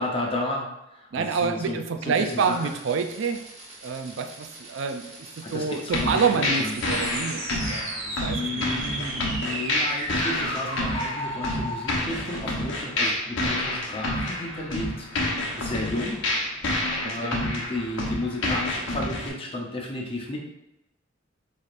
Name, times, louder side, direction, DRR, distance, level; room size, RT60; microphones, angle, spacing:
voice 1, 0.0-1.8 2.0-2.6 5.4-7.1 8.0-16.2 16.8-20.4, left 1 dB, 25° left, -1 dB, 0.8 m, -33 dB
voice 2, 1.1-3.4 3.8-7.9 8.2-8.6 13.4-13.5 17.0-17.4, right 5 dB, 65° right, 7 dB, 0.4 m, -28 dB
sound 1, 2.1-11.9, right 1 dB, 30° right, 1.2 m, -36 dB
sound 2, 5.9-19.3, left 1 dB, 70° left, 1.0 m, -29 dB
4.9 x 4.1 x 2.5 m, 0.90 s
head